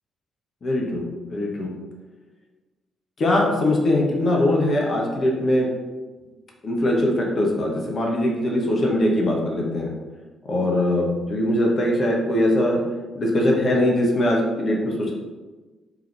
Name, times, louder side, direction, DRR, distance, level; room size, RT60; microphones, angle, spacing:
voice 1, 0.6-1.7 3.2-5.7 6.6-9.9 10.4-12.8 13.1-15.1, left 1 dB, 40° left, -1 dB, 0.8 m, -21 dB
3.9 x 2.9 x 3.2 m, 1.3 s
figure-of-eight pair, 40°, 0 cm